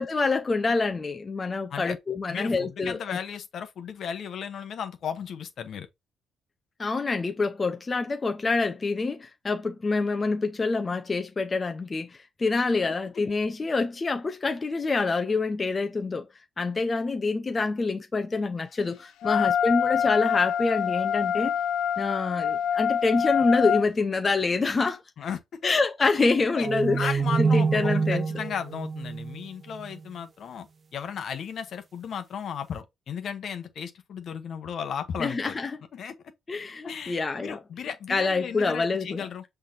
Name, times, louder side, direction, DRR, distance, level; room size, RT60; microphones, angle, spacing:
voice 1, 0.0-3.2 6.8-16.3 16.6-21.5 22.0-25.0 25.6-28.3 35.2-35.7 36.5-37.6 38.1-39.2, left 3 dB, 30° left, 0.6 m, -26 dB
voice 2, 2.3-5.9 19.2-19.5 25.2-25.7 26.5-26.7 26.9-30.7 30.9-35.6 35.9-36.1 36.8-39.4, left 7 dB, 60° left, 0.9 m, -35 dB
Wind instrument woodwind instrument, 19.2-23.8, left 8 dB, 90° left, 0.4 m, -25 dB
sound 1, 26.6-30.0, right 5 dB, 40° right, 0.5 m, -26 dB
5.7 x 3.4 x 2.6 m
cardioid pair, 90°, 0 cm